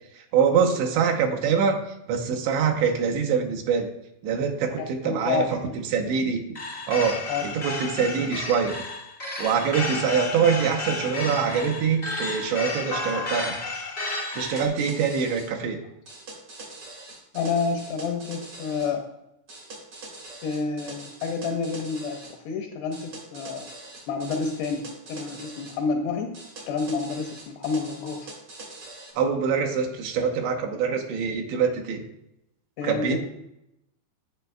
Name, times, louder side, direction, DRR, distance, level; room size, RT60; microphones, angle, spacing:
voice 1, 0.1-1.8 2.1-3.9 4.2-5.6 5.9-6.4 6.9-8.8 9.4-13.5 14.3-15.8 29.2-32.0 32.8-33.2, right 6 dB, 80° right, 2 dB, 3.0 m, -24 dB
voice 2, 4.8-5.7 7.3-7.5 17.3-19.0 20.4-23.7 24.1-26.3 26.7-28.3 32.8-33.2, left 5 dB, 85° left, 3 dB, 2.4 m, -29 dB
sound 1, 6.5-14.7, left 3 dB, 45° left, 0.8 m, -32 dB
sound 2, 14.4-15.5 16.1-18.9 19.5-22.4 22.9-25.8 26.3-29.1, right 2 dB, 65° right, 1.3 m, -43 dB
10.5 x 8.1 x 2.2 m, 0.83 s
omnidirectional pair, 5.3 m